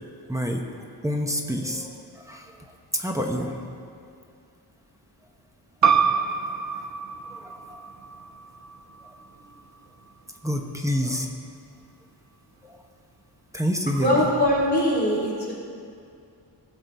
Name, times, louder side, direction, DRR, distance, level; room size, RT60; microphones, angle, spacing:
voice 1, 0.3-0.6 1.0-2.4 2.9-3.5 6.8-6.9 7.4-7.8 10.4-11.3 12.6-12.7 13.5-14.1, equal, 10° right, 1 dB, 1.0 m, -27 dB
sound 1, 5.8-11.0, right 6 dB, 45° right, 0.7 m, -27 dB
voice 2, 14.0-15.5, equal, 25° left, -6 dB, 3.5 m, -22 dB
19.0 x 7.1 x 4.7 m, 2.4 s
wide cardioid pair, 155°, 41 cm